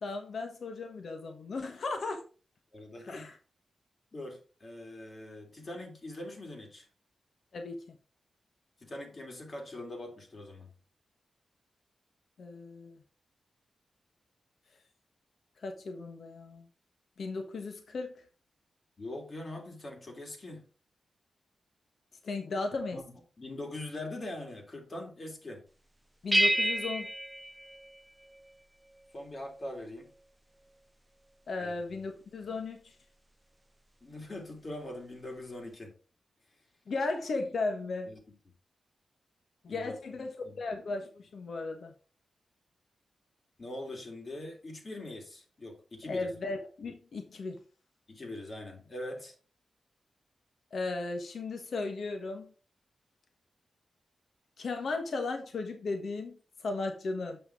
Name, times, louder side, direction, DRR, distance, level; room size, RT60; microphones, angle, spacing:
voice 1, 0.0-2.2 3.1-3.3 7.5-8.0 12.4-13.0 15.6-16.7 17.2-18.2 22.2-23.0 26.2-27.1 31.5-32.9 36.9-38.1 39.6-41.9 46.1-47.6 50.7-52.5 54.6-57.4, left 3 dB, 70° left, 1.4 m, -36 dB
voice 2, 2.7-3.3 4.1-6.9 8.8-10.7 19.0-20.6 22.7-25.7 29.1-30.1 31.6-31.7 34.0-35.9 38.1-38.2 38.5-38.6 39.7-40.6 43.6-46.3 48.1-49.4, left 1 dB, 45° left, 3.3 m, -42 dB
sound 1, 26.3-28.5, right 1 dB, 15° right, 0.4 m, -29 dB
7.7 x 6.2 x 4.7 m
cardioid pair, 65°, 0 cm